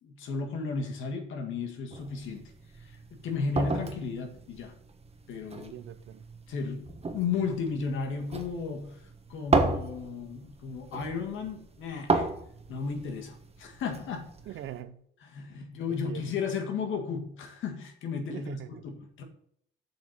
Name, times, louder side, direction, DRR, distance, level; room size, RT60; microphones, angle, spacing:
voice 1, 0.0-2.5 2.8-4.7 5.3-5.7 6.5-9.0 9.3-12.3 12.7-14.3 15.2-19.2, left 5 dB, 80° left, 1.8 m, -34 dB
sound 1, 1.9-14.8, right 3 dB, 30° right, 1.3 m, -34 dB
voice 2, 5.6-6.2 14.5-15.0 15.9-16.4 18.3-18.9, right 11 dB, 75° right, 0.7 m, -42 dB
7.6 x 4.4 x 6.8 m
cardioid pair, 90°, 20 cm